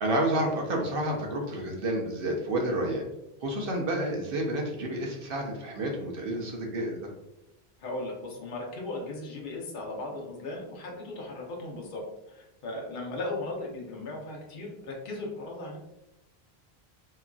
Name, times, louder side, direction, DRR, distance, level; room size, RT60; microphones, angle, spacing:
voice 1, 0.0-3.0 3.4-7.1, right 1 dB, 65° right, 1 dB, 0.8 m, -30 dB
voice 2, 7.8-15.8, left 2 dB, 55° left, -2 dB, 0.8 m, -37 dB
2.9 x 2.5 x 2.3 m, 0.89 s
omnidirectional pair, 1.1 m